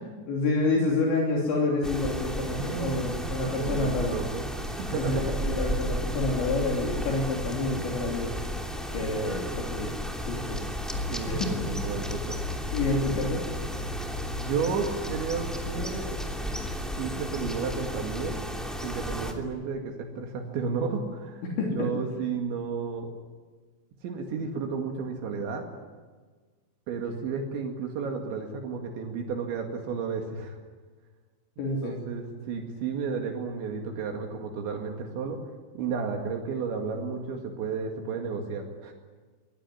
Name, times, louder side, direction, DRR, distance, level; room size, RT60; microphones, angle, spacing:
voice 1, 0.3-4.2 5.0-8.4 8.9-9.9 10.3-10.6 11.3-11.5 12.7-13.4 21.4-21.9 31.6-32.0, left 3 dB, 65° left, -1 dB, 5.3 m, -28 dB
sound 1, 1.8-19.3, equal, ahead, 1.0 m, -34 dB
voice 2, 2.6-4.4 4.8-5.4 11.1-12.4 14.4-16.2 17.0-18.4 18.8-21.4 21.7-23.1 24.0-25.7 26.9-30.6 31.6-35.4 35.8-38.9, right 5 dB, 70° right, 3 dB, 4.2 m, -32 dB
sound 2, 10.9-16.8, left 3 dB, 90° left, 0.8 m, -38 dB
24.5 x 19.5 x 9.7 m, 1.4 s
omnidirectional pair, 5.7 m